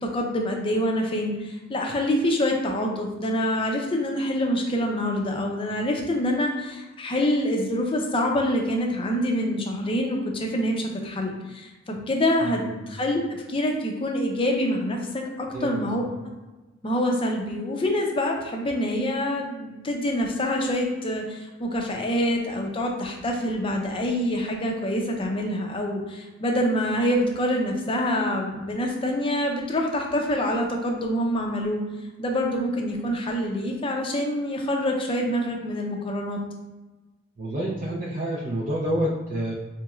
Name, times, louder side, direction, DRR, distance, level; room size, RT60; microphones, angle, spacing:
voice 1, 0.0-13.2 13.5-16.0 16.8-31.8 32.2-36.4, equal, 25° left, 1 dB, 0.5 m, -26 dB
voice 2, 15.5-15.9 37.4-39.5, right 1 dB, 40° right, -5 dB, 0.5 m, -28 dB
4.1 x 3.0 x 2.4 m, 1.2 s
head